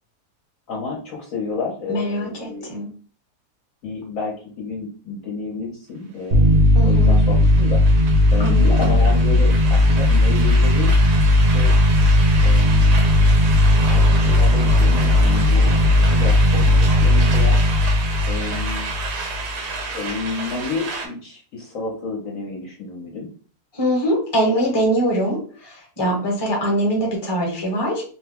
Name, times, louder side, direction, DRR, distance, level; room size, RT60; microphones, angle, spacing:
voice 1, 0.7-2.7 3.8-7.8 8.3-10.9 11.5-11.7 12.4-13.0 13.8-15.7 16.1-17.6 18.3-18.9 19.9-23.3, left 3 dB, 60° left, -3 dB, 1.1 m, -30 dB
voice 2, 1.9-2.9 6.7-7.2 8.4-8.9 23.7-28.0, equal, 20° left, -1 dB, 0.9 m, -23 dB
sound 1, 6.3-19.5, left 1 dB, 65° right, 0.6 m, -16 dB
sound 2, 6.5-21.1, right 4 dB, 80° right, 1.3 m, -31 dB
3.0 x 2.2 x 3.4 m, 0.42 s
omnidirectional pair, 1.7 m